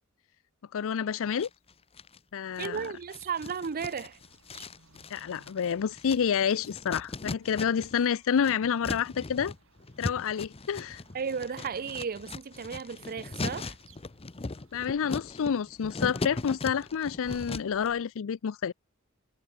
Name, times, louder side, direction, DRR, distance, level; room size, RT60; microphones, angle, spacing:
voice 1, 0.7-1.5 2.3-2.8 5.1-9.5 10.0-11.0 14.7-18.7, left 7 dB, 65° left, 0.4 m, -29 dB
sound 1, 1.4-2.2 2.6-8.1 8.3-17.9, left 3 dB, 25° left, 0.7 m, -39 dB
voice 2, 2.6-4.2 11.1-13.8, right 6 dB, 40° right, 0.6 m, -34 dB
sound 2, 2.7-18.0, right 3 dB, 65° right, 7.2 m, -60 dB
head